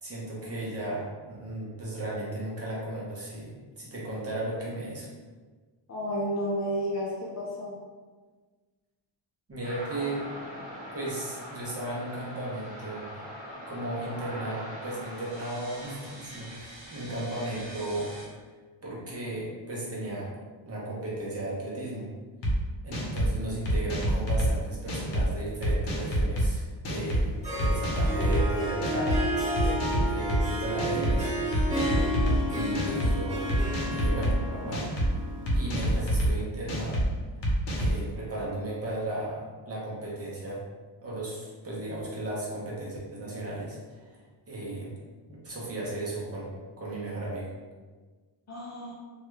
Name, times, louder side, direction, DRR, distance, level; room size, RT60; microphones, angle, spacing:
voice 1, 0.0-5.1 9.5-10.2 10.9-13.0 13.7-18.1 18.8-20.3 20.6-22.2 22.8-29.7 30.0-31.3 32.5-35.2 35.5-37.0 37.8-40.6 41.0-44.2 44.5-44.9 45.3-46.5 46.8-47.5, right 1 dB, 30° right, -5 dB, 0.7 m, -35 dB
voice 2, 5.9-7.8 48.5-48.9, equal, 35° left, -5 dB, 0.4 m, -31 dB
sound 1, 9.6-18.3, equal, 50° right, 1.1 m, -42 dB
sound 2, 22.4-22.5 22.9-23.3 23.7-24.5 24.9-25.2 25.6-26.5 26.8-27.2 27.6-28.4 28.8-29.2 29.6-30.4 30.8-31.2 31.5-32.4 32.7-33.1 33.5-34.3 34.7-35.1 35.5-36.3 36.7-37.0 37.4-38.0, right 1 dB, 60° left, 0.8 m, -27 dB
Harp, 27.2-36.2, equal, 15° right, 1.1 m, -32 dB
3.0 x 2.3 x 3.1 m, 1.4 s
wide cardioid pair, 155°, 49 cm